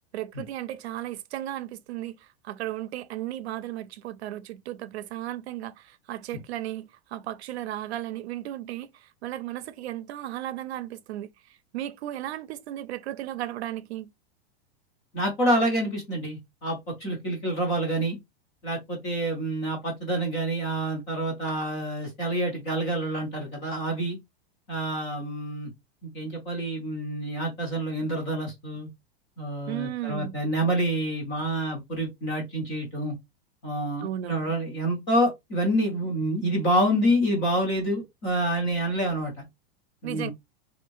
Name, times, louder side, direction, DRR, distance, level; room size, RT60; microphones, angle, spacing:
voice 1, 0.1-2.2 2.4-8.9 9.2-11.3 11.7-14.1 29.7-30.4 34.0-34.5 40.0-40.3, right 13 dB, 85° right, 0.6 m, -35 dB
voice 2, 15.1-18.2 18.6-24.2 24.7-25.7 26.0-28.9 29.4-33.2 33.6-39.3 40.0-40.3, right 1 dB, 10° left, 0.3 m, -27 dB
3.4 x 2.6 x 2.9 m
supercardioid pair, 180°, 31 cm